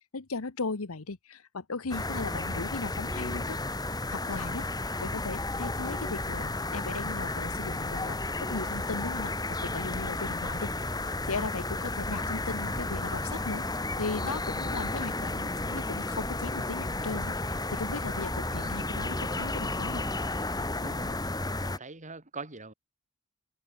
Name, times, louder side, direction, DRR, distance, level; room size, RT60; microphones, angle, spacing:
voice 1, 0.0-3.6 4.1-4.7 5.0-9.3 9.6-10.7 11.3-13.6 14.0-20.0, left 3 dB, 70° left, 1.1 m, -37 dB
sound 1, 1.9-21.8, left 2 dB, 20° left, 2.6 m, -33 dB
voice 2, 4.4-4.9 20.8-21.3 21.6-22.7, right 3 dB, 35° right, 4.4 m, -43 dB
open air
head